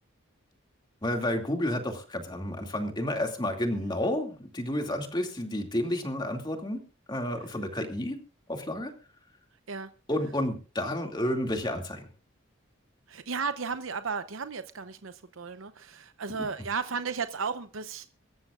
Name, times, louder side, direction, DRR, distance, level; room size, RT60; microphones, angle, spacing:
voice 1, 1.0-6.8 7.1-8.2 8.5-8.9 10.1-12.0, left 1 dB, 20° left, 2.4 m, -30 dB
voice 2, 13.1-18.1, right 5 dB, 75° right, 0.8 m, -34 dB
24.5 x 13.5 x 2.5 m
head